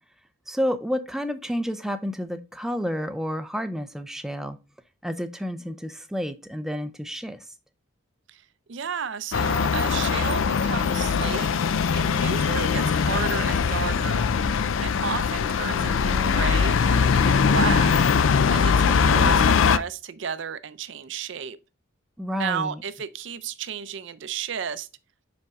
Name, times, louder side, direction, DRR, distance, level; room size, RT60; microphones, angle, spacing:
voice 1, 0.5-4.6 5.0-7.5 15.8-17.1 18.9-19.4 22.2-22.8, equal, ahead, 0.4 m, -31 dB
voice 2, 8.7-11.5 11.9-14.3 14.8-17.9 18.5-21.6 22.4-24.9, right 7 dB, 60° right, 0.5 m, -32 dB
sound 1, 9.3-19.8, left 6 dB, 65° left, 0.4 m, -21 dB
5.4 x 5.1 x 3.5 m
head